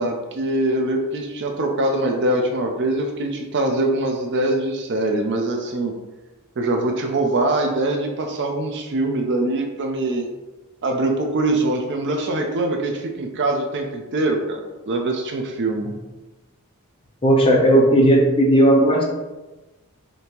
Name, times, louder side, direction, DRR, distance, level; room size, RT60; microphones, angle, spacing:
voice 1, 0.0-5.9 6.6-10.3 10.8-15.9, right 2 dB, 50° right, 3 dB, 0.5 m, -23 dB
voice 2, 17.2-19.0, right 1 dB, 25° left, -2 dB, 0.8 m, -15 dB
5.1 x 2.7 x 2.9 m, 1.1 s
head